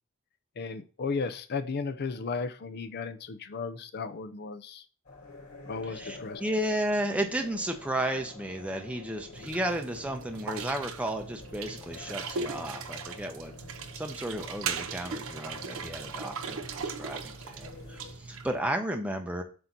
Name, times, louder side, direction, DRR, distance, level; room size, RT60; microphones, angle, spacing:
voice 1, 0.6-4.8 5.7-6.4, left 4 dB, 50° left, 10 dB, 0.5 m, -35 dB
sound 1, 5.0-18.1, left 3 dB, 70° left, 3.4 m, -49 dB
voice 2, 5.9-19.4, right 1 dB, 5° right, 3 dB, 0.6 m, -33 dB
sound 2, 9.3-18.6, right 5 dB, 70° right, 0.6 m, -38 dB
7.8 x 2.7 x 5.9 m, 0.38 s
head